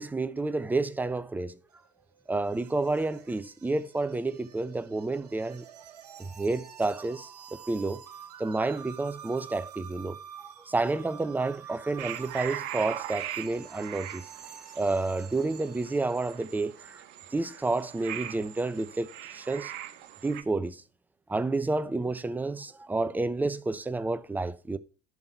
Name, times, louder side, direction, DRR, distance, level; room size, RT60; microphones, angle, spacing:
voice 1, 0.0-1.6 2.3-5.6 6.2-8.0 8.4-14.2 14.8-17.0 17.3-19.7 20.2-20.8 21.3-24.8, right 3 dB, 10° right, 0.7 m, -30 dB
sound 1, 1.7-16.3, right 8 dB, 90° right, 1.0 m, -49 dB
sound 2, 12.0-20.4, right 11 dB, 65° right, 1.4 m, -40 dB
11.0 x 5.8 x 4.5 m
hypercardioid pair, 80°, 20 cm